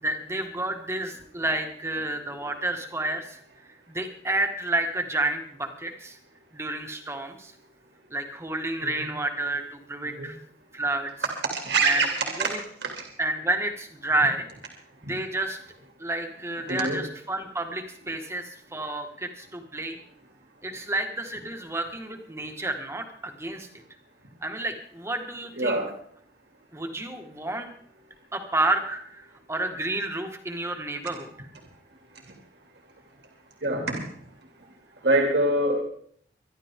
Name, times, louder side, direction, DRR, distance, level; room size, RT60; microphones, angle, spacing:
voice 1, 0.0-3.4 3.9-6.2 6.5-7.5 8.1-10.4 10.7-11.1 11.8-12.0 12.4-12.6 13.2-14.5 15.0-15.6 16.0-20.0 20.6-23.7 24.4-25.8 26.7-27.7 28.3-31.5, right 2 dB, 15° right, 4 dB, 1.8 m, -30 dB
voice 2, 11.6-12.5 12.8-12.9 15.1-15.2 16.7-17.0 25.6-25.9 33.6-34.0 35.0-35.8, right 2 dB, 65° right, 2 dB, 2.7 m, -24 dB
24.5 x 11.5 x 3.7 m, 0.62 s
head